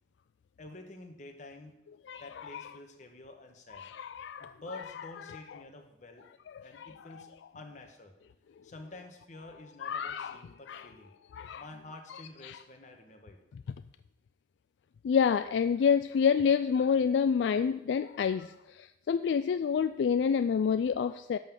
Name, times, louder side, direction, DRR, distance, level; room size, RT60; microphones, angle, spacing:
voice 1, 0.6-1.8 2.2-3.9 4.4-6.2 6.6-8.1 8.6-11.1 11.6-13.4, left 2 dB, 45° left, 4 dB, 1.3 m, -49 dB
voice 2, 2.1-2.6 3.8-4.5 6.6-6.9 9.8-10.4 10.7-10.9 11.3-11.6 12.4-12.6 15.0-21.4, left 6 dB, 75° left, 12 dB, 0.3 m, -28 dB
11.5 x 4.0 x 7.4 m, 0.92 s
head